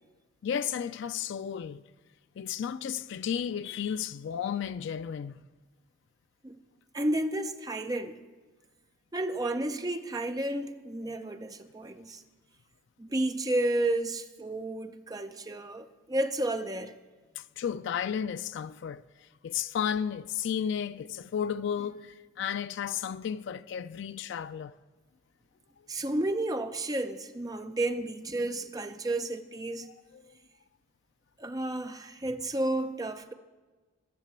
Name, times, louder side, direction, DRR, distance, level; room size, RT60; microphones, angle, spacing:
voice 1, 0.4-1.8 2.4-5.4 17.4-19.0 19.4-24.7 30.1-30.3, left 8 dB, 60° left, 0.3 m, -33 dB
voice 2, 6.9-8.2 9.1-12.2 13.0-16.9 25.9-29.9 31.4-33.3, right 1 dB, 20° right, 0.5 m, -32 dB
13.5 x 6.7 x 8.9 m
head